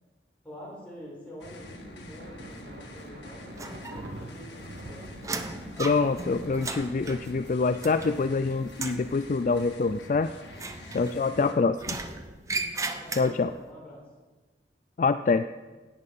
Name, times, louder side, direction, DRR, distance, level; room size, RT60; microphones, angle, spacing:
voice 1, 0.4-5.4 11.4-12.1 13.0-14.0, equal, 5° left, -5 dB, 5.0 m, -46 dB
sound 1, 1.4-11.5, left 1 dB, 90° left, 1.8 m, -45 dB
sound 2, 2.2-9.5, right 1 dB, 70° right, 1.1 m, -47 dB
sound 3, 3.6-4.3 4.6-8.4 8.7-9.1 10.5-11.4 11.8-13.6, right 3 dB, 20° right, 0.6 m, -36 dB
voice 2, 5.8-10.3 10.9-11.8 13.2-13.5 15.0-15.5, left 4 dB, 45° left, 11 dB, 0.3 m, -25 dB
17.0 x 8.4 x 5.5 m, 1.3 s
head